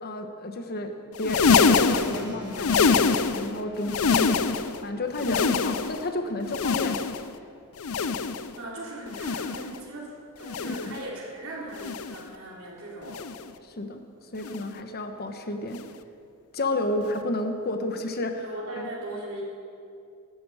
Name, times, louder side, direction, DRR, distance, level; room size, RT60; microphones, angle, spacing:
voice 1, 0.0-7.0 10.8-11.0 13.6-14.0 14.3-15.8 16.5-18.5 18.7-18.9, left 1 dB, 45° left, 6 dB, 1.2 m, -31 dB
sound 1, 1.1-3.5 3.8-4.8 5.1-6.1 6.5-7.3 7.8-8.5 9.1-9.8 10.4-11.0 11.7-12.3 13.1-13.5 14.4-14.7 15.7-15.9 17.1-17.2, left 5 dB, 80° left, 0.6 m, -25 dB
Keyboard (musical), 2.0-8.0, equal, 20° right, 4.6 m, -48 dB
voice 2, 8.5-13.3 18.4-19.4, right 1 dB, 70° right, -5 dB, 4.1 m, -38 dB
17.5 x 14.0 x 5.0 m, 2.5 s
head